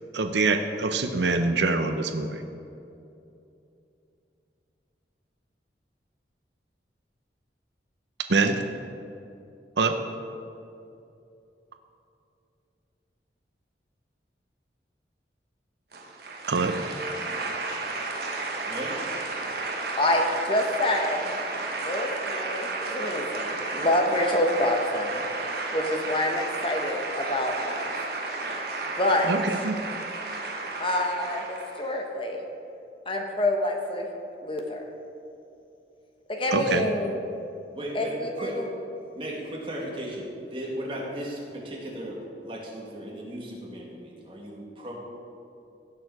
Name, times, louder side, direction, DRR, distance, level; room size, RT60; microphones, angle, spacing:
voice 1, 0.1-2.4 8.3-8.6 9.8-10.0 16.5-16.8 29.3-29.8 36.5-36.9, right 3 dB, 85° right, 7 dB, 0.7 m, -24 dB
sound 1, 15.9-32.0, right 3 dB, 60° right, 1.2 m, -33 dB
voice 2, 18.6-19.0 19.4-19.6 37.7-38.8 39.1-44.9, equal, 30° right, -3 dB, 2.2 m, -36 dB
voice 3, 20.0-21.2 21.8-25.2 25.7-27.9 29.0-29.4 30.8-32.4 33.1-34.1 34.4-34.8 36.3-37.2 37.9-38.7, left 1 dB, 30° left, 2 dB, 1.0 m, -27 dB
17.0 x 6.7 x 4.8 m, 2.7 s
head